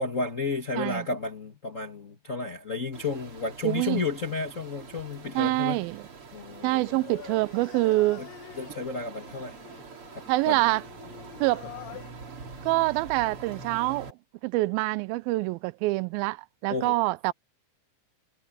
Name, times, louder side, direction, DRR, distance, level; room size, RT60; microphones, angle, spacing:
voice 1, 0.0-5.9 6.3-6.8 8.2-8.3 8.5-9.6 10.1-10.6 16.7-16.9, left 4 dB, 45° left, 1.0 m, -32 dB
sound 1, 2.9-14.1, right 4 dB, 40° right, 3.2 m, -45 dB
voice 2, 3.6-4.0 5.4-6.0 6.6-8.3 10.3-10.8 11.4-11.6 12.6-14.2 14.4-17.3, right 20 dB, 85° right, 2.4 m, -26 dB
Singing, 6.7-12.1, left 14 dB, 75° left, 2.5 m, -46 dB
omnidirectional pair, 4.2 m